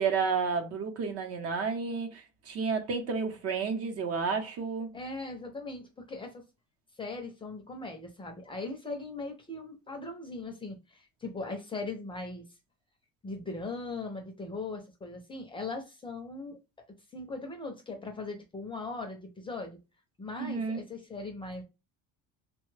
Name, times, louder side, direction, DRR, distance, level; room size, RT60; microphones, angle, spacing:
voice 1, 0.0-4.9 20.4-20.8, right 5 dB, 45° right, 0.8 m, -31 dB
voice 2, 4.9-6.4 7.0-12.5 13.2-16.6 17.1-19.8 20.2-21.6, left 3 dB, 15° left, 0.5 m, -39 dB
3.1 x 2.2 x 3.1 m
cardioid pair, 155°, 32 cm